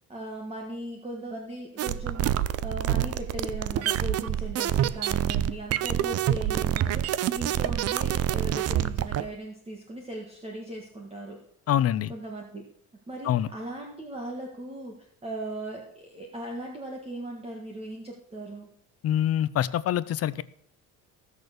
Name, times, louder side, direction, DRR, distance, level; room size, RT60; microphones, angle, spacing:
voice 1, 0.1-11.4 12.1-12.6 13.1-14.9 15.2-18.7, right 1 dB, 15° right, 0 dB, 1.6 m, -38 dB
sound 1, 1.8-9.3, right 11 dB, 45° right, 0.5 m, -27 dB
voice 2, 11.7-12.1 13.2-13.5 19.0-20.4, left 11 dB, 40° left, 16 dB, 0.5 m, -25 dB
15.5 x 6.5 x 6.7 m, 0.68 s
cardioid pair, 150°, 36 cm